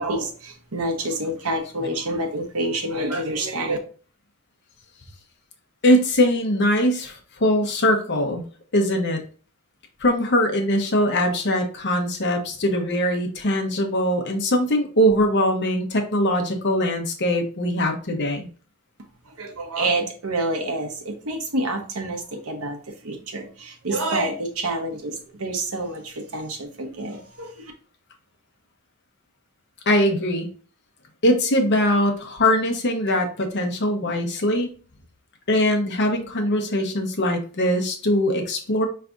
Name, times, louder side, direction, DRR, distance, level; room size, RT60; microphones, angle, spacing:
voice 1, 0.0-3.8 19.4-22.8 23.0-25.1 25.4-27.7, right 2 dB, 85° right, 3 dB, 1.1 m, -27 dB
voice 2, 5.8-8.4 8.7-9.2 10.0-18.5 29.9-30.5 31.2-34.7 35.5-38.9, equal, 55° left, 4 dB, 0.9 m, -21 dB
4.6 x 3.3 x 2.6 m, 0.38 s
head